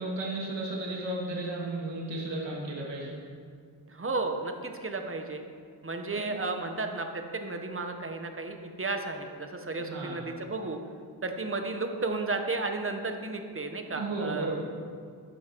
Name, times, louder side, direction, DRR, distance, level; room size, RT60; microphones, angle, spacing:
voice 1, 0.0-3.1 6.1-6.3 9.9-10.2 13.9-14.6, right 2 dB, 75° right, -4 dB, 2.8 m, -34 dB
voice 2, 3.9-5.4 5.8-10.8 11.2-14.5, right 3 dB, 30° right, 5 dB, 1.4 m, -33 dB
14.5 x 11.5 x 4.8 m, 2.2 s
wide cardioid pair, 105°, 43 cm